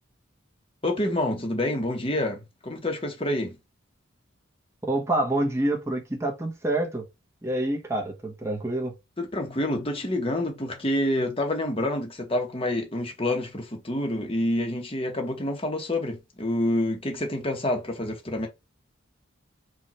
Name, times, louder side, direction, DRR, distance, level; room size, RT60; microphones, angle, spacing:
voice 1, 0.8-3.6 9.2-18.5, left 1 dB, 25° left, 1.1 m, -27 dB
voice 2, 4.8-7.0 7.4-8.9, right 1 dB, 15° right, 1.0 m, -27 dB
4.8 x 2.6 x 4.2 m
head